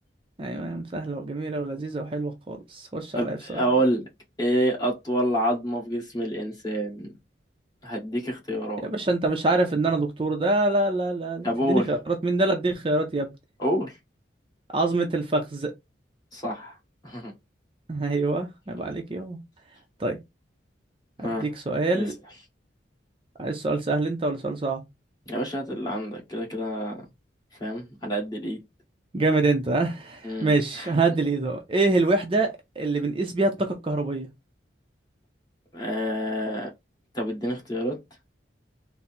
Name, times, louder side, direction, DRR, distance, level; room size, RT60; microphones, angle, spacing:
voice 1, 0.4-3.7 8.8-13.3 14.7-15.7 17.9-19.4 20.0-20.2 21.2-22.1 23.4-24.8 29.1-34.3, right 2 dB, 30° right, 0.5 m, -25 dB
voice 2, 3.1-4.0 4.4-7.1 7.8-8.9 11.4-11.9 13.6-14.0 16.3-16.8 17.0-17.3 21.2-21.5 22.0-22.1 25.3-27.0 27.6-28.6 30.2-30.5 30.8-30.9 35.7-36.7 37.1-38.0, right 1 dB, 20° left, 1.5 m, -27 dB
3.9 x 2.0 x 4.2 m
head